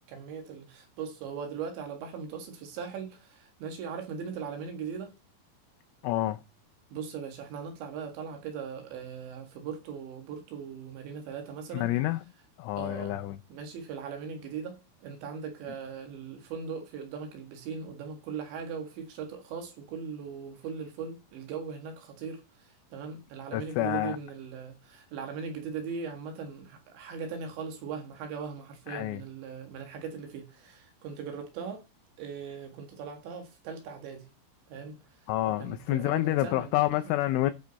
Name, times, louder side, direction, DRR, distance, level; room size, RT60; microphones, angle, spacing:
voice 1, 0.1-5.1 6.9-11.9 12.8-13.2 13.5-31.8 32.2-34.3 34.7-35.0 35.5-37.1, right 6 dB, 65° right, 3.8 m, -39 dB
voice 2, 6.0-6.4 11.7-12.2 12.6-13.4 23.5-24.2 28.9-29.2 35.3-37.5, left 15 dB, 80° left, 3.0 m, -28 dB
14.0 x 6.3 x 4.0 m
omnidirectional pair, 5.9 m